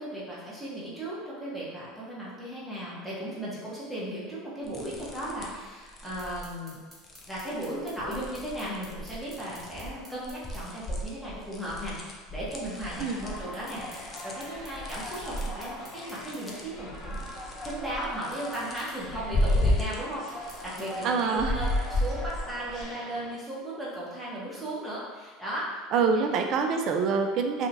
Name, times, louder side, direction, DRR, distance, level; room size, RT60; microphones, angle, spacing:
voice 1, 0.0-6.8 7.3-25.8 26.1-26.3, right 1 dB, ahead, -8 dB, 1.1 m, -36 dB
sound 1, 4.6-5.6 5.9-6.5 7.0-7.6 8.0-9.9 10.2-20.2 20.4-22.8, left 1 dB, 30° left, 0.5 m, -33 dB
sound 2, 6.2-10.7 13.5-16.6 18.3-19.0 20.3-20.9, right 1 dB, 20° right, 1.3 m, -51 dB
sound 3, 12.8-23.3, left 1 dB, 50° left, 1.3 m, -43 dB
voice 2, 21.0-21.6 25.9-27.7, right 5 dB, 55° right, 4 dB, 0.3 m, -25 dB
2.7 x 2.4 x 2.8 m, 1.4 s
hypercardioid pair, 80°, 0 cm